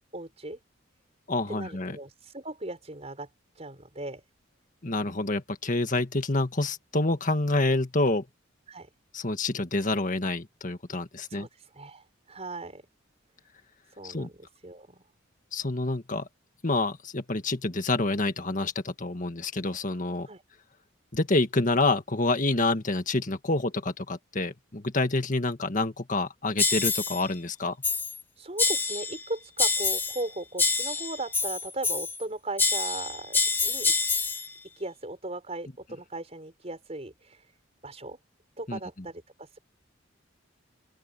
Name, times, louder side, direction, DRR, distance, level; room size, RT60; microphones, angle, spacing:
voice 1, 0.1-0.6 1.5-3.3 3.6-4.2 8.7-8.9 11.3-12.8 13.9-15.0 20.3-20.4 28.4-33.9 34.8-37.5 37.8-38.2 38.6-39.6, right 2 dB, 35° right, 5.3 m, -38 dB
voice 2, 1.3-2.0 4.8-8.3 9.1-11.5 14.0-14.3 15.5-16.3 16.6-20.3 21.1-27.8 38.7-38.8, left 2 dB, 40° left, 1.8 m, -27 dB
sound 1, 26.6-27.2 27.8-28.2 28.6-29.2 29.6-30.3 30.6-32.2 32.6-34.5, left 4 dB, 10° left, 0.9 m, -26 dB
open air
head